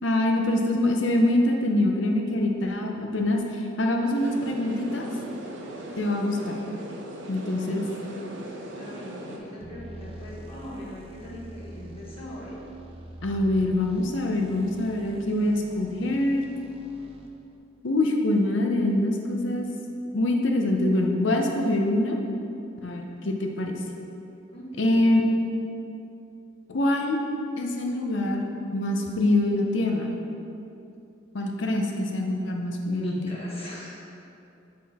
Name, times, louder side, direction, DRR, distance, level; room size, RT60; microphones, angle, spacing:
voice 1, 0.0-5.1 6.0-6.6 7.3-7.8 13.2-16.5 17.8-19.7 20.1-22.2 22.8-23.8 24.8-25.2 26.7-27.2 27.6-30.1 31.3-33.4, left 1 dB, 70° left, 1 dB, 0.7 m, -24 dB
sound 1, 4.1-9.4, right 1 dB, 65° right, 0.8 m, -39 dB
voice 2, 7.4-7.8 8.6-12.6 24.4-25.1 32.8-33.9, left 1 dB, 30° left, -7 dB, 1.3 m, -40 dB
sound 2, 9.6-17.6, right 1 dB, 30° right, 0.5 m, -45 dB
8.5 x 3.8 x 4.3 m, 2.7 s
head